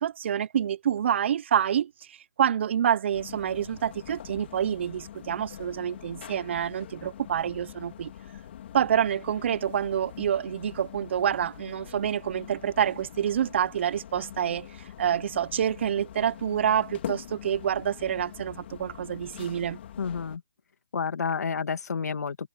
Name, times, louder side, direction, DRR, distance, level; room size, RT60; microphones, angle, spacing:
voice 1, 0.0-8.1 8.7-14.7 15.0-19.8, right 9 dB, 45° right, 0.7 m, -27 dB
sound 1, 3.1-20.4, left 10 dB, 40° left, 3.2 m, -44 dB
voice 2, 20.0-20.4 20.9-22.5, left 6 dB, 75° left, 2.3 m, -30 dB
hypercardioid pair, 160°, 9 cm